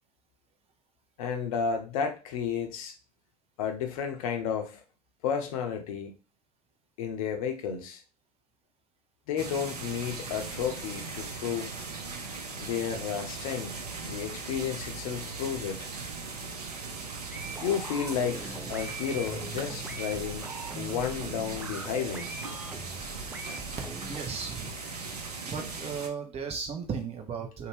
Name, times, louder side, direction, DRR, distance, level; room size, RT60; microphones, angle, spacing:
voice 1, 1.2-2.9 3.6-4.8 5.2-6.1 7.0-8.0 9.3-11.7 12.6-15.9 17.6-22.3, left 7 dB, 60° left, 5 dB, 0.6 m, -32 dB
sound 1, 9.4-26.1, right 4 dB, 80° right, 0.5 m, -39 dB
sound 2, 17.3-24.2, right 3 dB, 10° right, 0.3 m, -42 dB
voice 2, 23.8-24.7 25.5-27.7, right 6 dB, 30° right, 3 dB, 0.8 m, -36 dB
2.7 x 2.2 x 3.1 m, 0.32 s
figure-of-eight pair, 65°, 20 cm